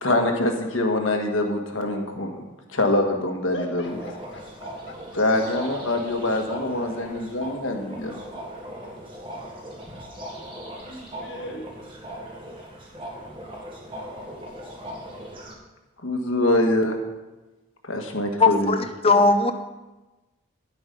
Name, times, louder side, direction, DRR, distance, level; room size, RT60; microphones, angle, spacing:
voice 1, 0.0-2.3 2.7-3.9 5.1-8.2 16.0-17.0 17.8-18.8, left 1 dB, 85° left, 3 dB, 1.6 m, -24 dB
voice 2, 3.5-5.2 10.9-11.7, equal, 60° left, 2 dB, 1.7 m, -38 dB
sound 1, 3.8-15.5, equal, 25° right, 1.7 m, -39 dB
voice 3, 18.4-19.5, left 3 dB, 30° left, 8 dB, 0.7 m, -19 dB
11.0 x 8.1 x 5.4 m, 1.1 s
head